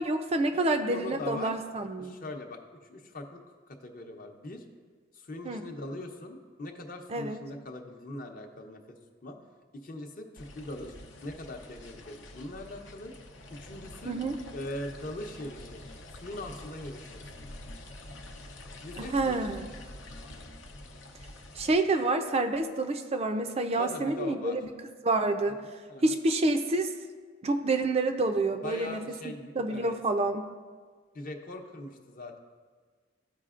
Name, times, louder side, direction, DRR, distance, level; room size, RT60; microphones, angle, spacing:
voice 1, 0.0-2.1 5.4-5.6 7.1-7.4 14.1-14.4 19.0-19.7 21.6-24.7 25.0-25.6 26.0-26.9 27.4-30.5, right 2 dB, 35° right, 7 dB, 0.4 m, -28 dB
voice 2, 0.5-1.5 2.0-2.6 2.9-4.6 5.1-9.4 9.7-11.0 11.2-13.1 13.6-14.2 14.5-15.8 16.2-17.5 18.8-19.4 23.8-24.6 25.5-26.2 28.6-29.9 31.1-32.4, left 1 dB, 45° left, 4 dB, 0.8 m, -41 dB
sound 1, 10.4-21.7, left 1 dB, 85° left, 0.7 m, -46 dB
14.0 x 5.0 x 2.5 m, 1.5 s
head